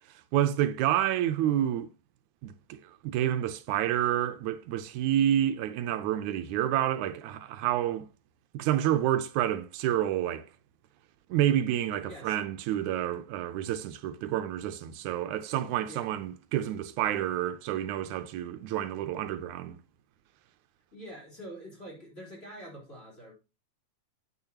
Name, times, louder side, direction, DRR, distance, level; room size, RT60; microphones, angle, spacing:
voice 1, 0.3-1.9 2.4-8.1 8.5-10.5 11.3-19.8, right 11 dB, 85° right, 2.1 m, -29 dB
voice 2, 20.9-23.3, equal, 20° left, 3.9 m, -45 dB
9.5 x 8.3 x 2.9 m
omnidirectional pair, 3.4 m